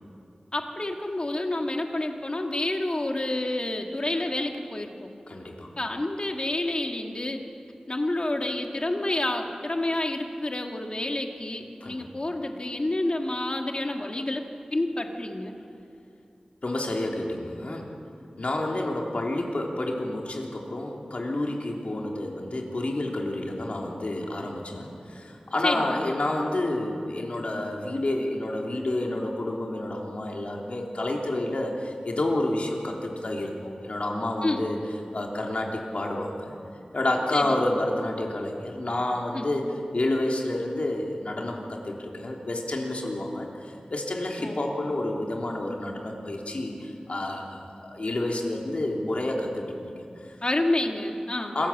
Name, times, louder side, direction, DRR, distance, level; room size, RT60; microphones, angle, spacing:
voice 1, 0.5-5.1 5.8-7.4 7.9-14.4 14.7-15.5 25.6-26.0 34.4-34.6 37.3-37.6 39.3-39.5 44.4-44.6 50.4-51.6, left 1 dB, 40° left, 3 dB, 2.1 m, -29 dB
voice 2, 5.3-5.7 11.8-12.1 16.6-17.9 18.4-34.8 35.1-36.5 36.9-49.9 50.2-50.3 51.5-51.7, left 1 dB, 65° left, 0 dB, 3.2 m, -29 dB
26.5 x 14.5 x 7.5 m, 2.5 s
wide cardioid pair, 65°, 2 cm